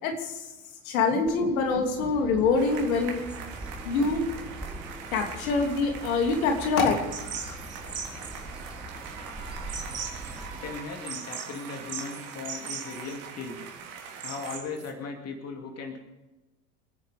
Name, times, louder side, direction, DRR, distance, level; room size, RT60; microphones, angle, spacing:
voice 1, 0.0-0.4 0.8-3.2 3.8-4.2 5.1-6.9, left 4 dB, 60° left, 3 dB, 3.0 m, -25 dB
voice 2, 1.1-2.1 10.5-13.6 14.2-16.0, left 4 dB, 30° left, 4 dB, 2.6 m, -38 dB
Bird, 1.2-10.9, right 1 dB, ahead, 3.3 m, -42 dB
sound 1, 2.6-14.6, right 6 dB, 45° right, 3.7 m, -43 dB
sound 2, 7.1-14.9, right 6 dB, 30° right, 3.1 m, -40 dB
27.5 x 10.0 x 5.1 m, 1.1 s
figure-of-eight pair, 80°, 46 cm